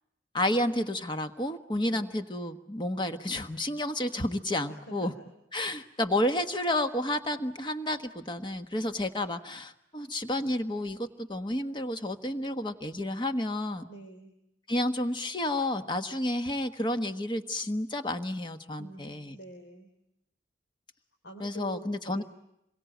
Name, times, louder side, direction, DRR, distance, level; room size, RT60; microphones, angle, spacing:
voice 1, 0.3-5.1 5.5-13.9 14.7-19.4 21.4-22.2, left 1 dB, 25° left, 8 dB, 1.3 m, -31 dB
voice 2, 1.8-2.2 4.7-5.3 13.9-14.3 18.8-19.9 20.9-22.2, right 1 dB, 75° left, 2 dB, 3.9 m, -47 dB
27.5 x 23.0 x 9.2 m, 0.84 s
head